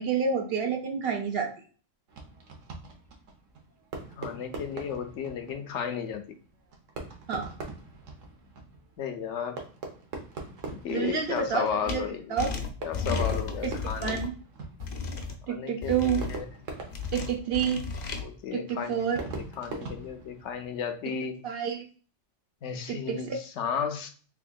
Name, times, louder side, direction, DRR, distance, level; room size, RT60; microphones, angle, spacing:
voice 1, 0.0-1.5 7.3-7.5 10.9-12.0 12.3-12.5 13.6-13.7 14.0-14.4 15.5-16.2 17.1-17.8 18.5-19.2 21.4-21.9 22.9-23.4, right 7 dB, 60° right, 4 dB, 0.8 m, -29 dB
Fireworks, 2.1-20.9, right 3 dB, 85° right, 1.2 m, -43 dB
voice 2, 4.2-6.3 9.0-9.6 10.7-12.4 12.8-14.2 15.5-16.4 18.2-19.3 19.6-21.4 22.6-24.1, left 7 dB, 75° left, 6 dB, 0.9 m, -34 dB
sound 1, 11.9-12.0 12.4-14.3 14.8-15.3 15.8-16.4 16.9-18.2, left 5 dB, 50° left, 0.5 m, -33 dB
3.5 x 3.5 x 2.2 m, 0.40 s
omnidirectional pair, 1.3 m